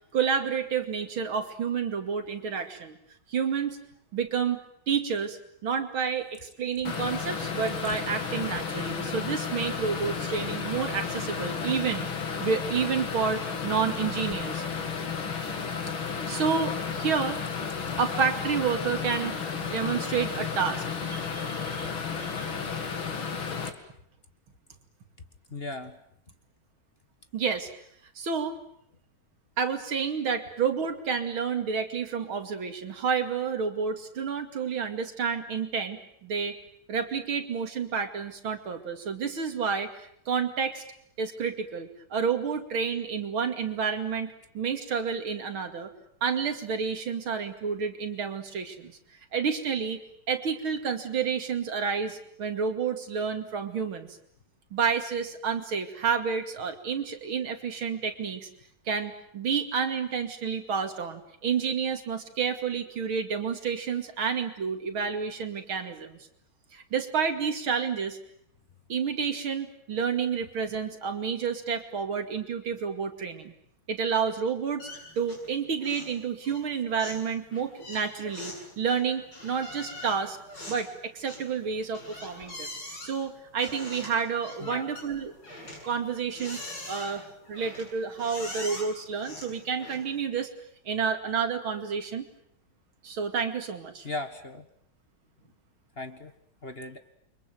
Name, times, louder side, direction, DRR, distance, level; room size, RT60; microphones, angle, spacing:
voice 1, 0.1-3.0 3.3-3.8 4.1-4.6 4.9-12.1 12.4-14.6 16.3-17.4 18.0-21.9 22.2-22.5 27.3-27.7 28.2-28.6 29.6-36.6 36.9-40.8 41.2-45.9 46.2-48.9 49.3-50.0 50.3-54.1 54.7-58.5 58.9-66.2 66.7-68.2 68.9-73.5 73.9-74.9 75.2-80.4 80.7-82.7 83.0-85.3 85.8-86.6 86.9-90.5 90.8-92.3 93.0-94.1, right 6 dB, 80° right, 6 dB, 3.2 m, -30 dB
sound 1, 6.9-23.7, left 6 dB, 80° left, 3.1 m, -33 dB
voice 2, 25.5-26.0 84.6-84.9 94.0-94.7 96.0-96.3 96.6-97.0, left 2 dB, 30° left, 8 dB, 1.6 m, -37 dB
sound 2, 74.8-75.5 75.8-76.2 76.4-90.3, left 1 dB, 60° left, 8.5 m, -43 dB
29.0 x 24.5 x 7.8 m, 0.69 s
omnidirectional pair, 2.2 m